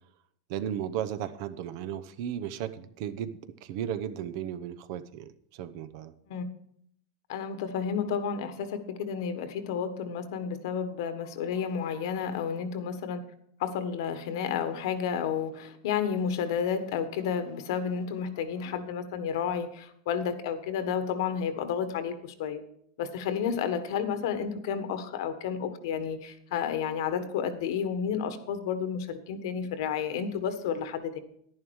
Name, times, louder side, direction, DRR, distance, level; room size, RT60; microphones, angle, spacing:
voice 1, 0.5-3.3 3.6-6.1, right 9 dB, 55° right, 12 dB, 0.9 m, -35 dB
voice 2, 7.3-13.2 13.6-22.6 23.0-31.2, left 7 dB, 70° left, 10 dB, 1.4 m, -31 dB
11.0 x 11.0 x 4.7 m, 0.68 s
supercardioid pair, 140°, 2 cm